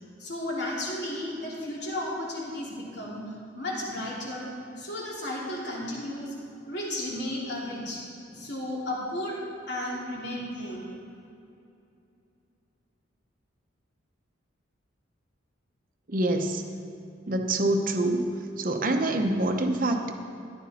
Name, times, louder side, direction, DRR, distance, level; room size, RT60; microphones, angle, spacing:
voice 1, 0.2-3.2 3.5-6.3 6.7-8.0 8.3-9.4 9.7-10.8, left 1 dB, 60° left, -4 dB, 2.8 m, -33 dB
voice 2, 16.1-16.6 17.3-18.3 18.6-20.1, right 2 dB, 45° right, 4 dB, 0.9 m, -25 dB
14.0 x 11.0 x 4.2 m, 2.7 s
head